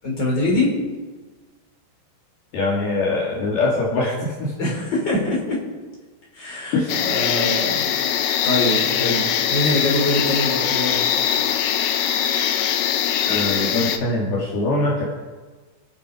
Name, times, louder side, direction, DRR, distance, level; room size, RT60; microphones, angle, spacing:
voice 1, 0.0-0.7 4.6-5.6 6.3-7.8 8.1-11.0, left 1 dB, 25° left, -3 dB, 5.4 m, -24 dB
voice 2, 2.5-4.5 6.7-6.9 13.3-15.0, left 2 dB, 65° left, -4 dB, 4.4 m, -22 dB
sound 1, 6.9-14.0, left 9 dB, 90° left, 3.2 m, -22 dB
28.5 x 10.0 x 5.1 m, 1.3 s
omnidirectional pair, 5.0 m